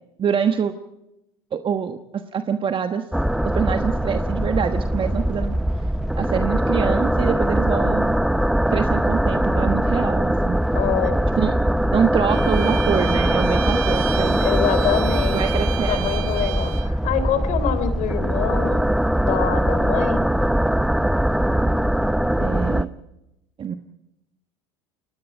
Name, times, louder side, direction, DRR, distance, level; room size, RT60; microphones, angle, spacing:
voice 1, 0.2-0.7 1.5-3.0 3.4-5.5 6.2-8.2 8.7-10.6 11.4-11.6 11.9-14.4 15.3-16.1 22.4-22.9 23.6-23.7, right 7 dB, 35° right, 8 dB, 1.3 m, -25 dB
sound 1, 3.1-22.8, right 1 dB, ahead, 0.7 m, -21 dB
voice 2, 10.7-11.2 14.4-15.4 15.9-18.9 19.2-20.3, left 8 dB, 60° left, 12 dB, 3.5 m, -25 dB
Bowed string instrument, 12.3-16.9, right 19 dB, 65° right, 1.3 m, -32 dB
29.0 x 21.0 x 4.5 m, 0.89 s
hypercardioid pair, 85°, 15 cm